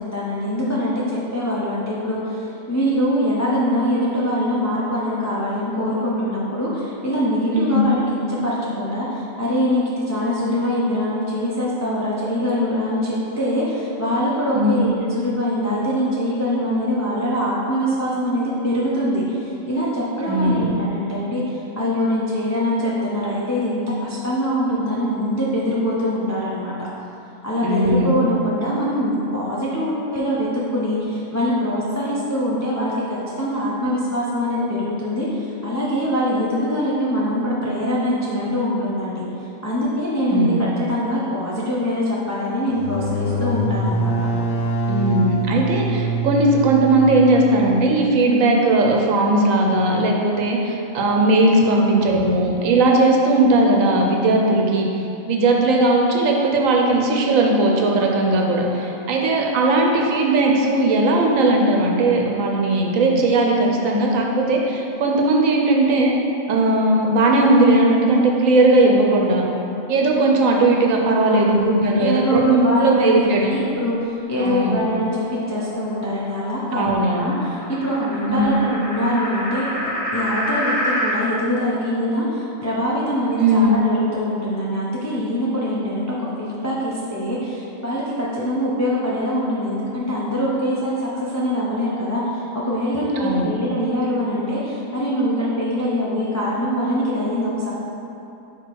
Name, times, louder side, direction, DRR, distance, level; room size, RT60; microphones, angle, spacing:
voice 1, 0.1-26.7 27.4-39.2 39.6-44.1 51.6-52.0 71.0-71.6 72.0-73.1 73.5-97.7, equal, 20° left, -7 dB, 0.5 m, -23 dB
voice 2, 14.5-14.9 20.3-20.7 27.6-28.2 40.3-40.6 44.9-54.9 55.3-66.1 66.5-69.4 69.9-73.5 74.4-74.8 76.7-77.3 78.3-78.5 83.4-83.8 93.2-93.5, right 2 dB, 75° right, 0 dB, 1.1 m, -18 dB
sound 1, 42.7-48.2, right 3 dB, 50° left, 0.8 m, -25 dB
sound 2, 74.6-81.2, equal, 35° left, 1.2 m, -29 dB
6.0 x 3.5 x 4.5 m, 2.8 s
omnidirectional pair, 1.4 m